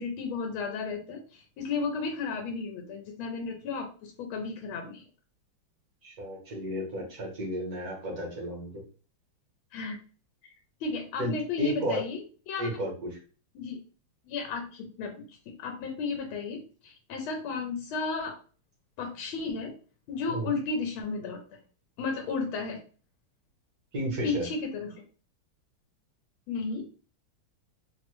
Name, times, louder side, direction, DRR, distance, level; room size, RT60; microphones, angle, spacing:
voice 1, 0.0-5.0 9.7-10.0 10.8-12.6 13.5-13.8 14.2-18.4 19.0-19.7 20.1-21.4 22.0-22.8 24.2-25.0 26.5-26.9, left 4 dB, 80° left, 2 dB, 1.4 m, -33 dB
voice 2, 6.0-8.8 11.2-12.0 12.6-12.9 20.3-20.6 23.9-24.4, equal, 55° right, -1 dB, 1.2 m, -33 dB
3.5 x 2.1 x 3.0 m, 0.38 s
omnidirectional pair, 2.3 m